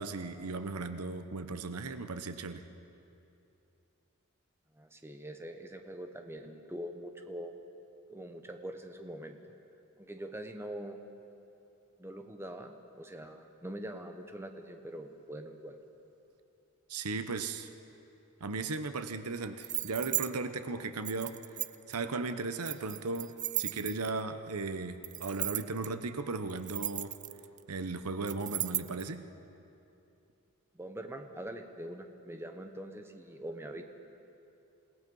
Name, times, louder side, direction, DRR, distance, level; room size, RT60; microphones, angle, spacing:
voice 1, 0.0-2.6 16.9-17.7 18.4-21.4 21.9-27.1 27.7-29.3, right 3 dB, 85° right, 9 dB, 1.0 m, -36 dB
voice 2, 4.7-7.6 8.1-9.4 10.0-11.0 12.0-15.8 30.7-33.8, right 1 dB, 10° right, 5 dB, 1.1 m, -43 dB
sound 1, 19.6-20.3 21.0-21.9 22.6-24.2 25.0-25.9 26.5-27.6 28.3-29.0, right 14 dB, 35° right, 0.4 m, -35 dB
28.0 x 18.0 x 5.5 m, 2.8 s
head